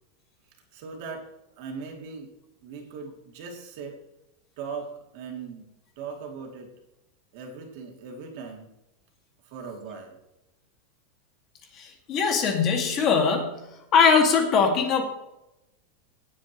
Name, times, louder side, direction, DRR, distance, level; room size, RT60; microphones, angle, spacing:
voice 1, 0.7-2.3 2.6-4.0 4.6-5.7 6.0-6.7 7.3-8.7 9.5-10.2, right 5 dB, 50° right, 1 dB, 2.7 m, -39 dB
voice 2, 11.8-13.6 13.9-15.0, left 5 dB, 30° left, 4 dB, 2.0 m, -21 dB
17.5 x 8.4 x 3.1 m, 0.90 s
supercardioid pair, 170°, 0 cm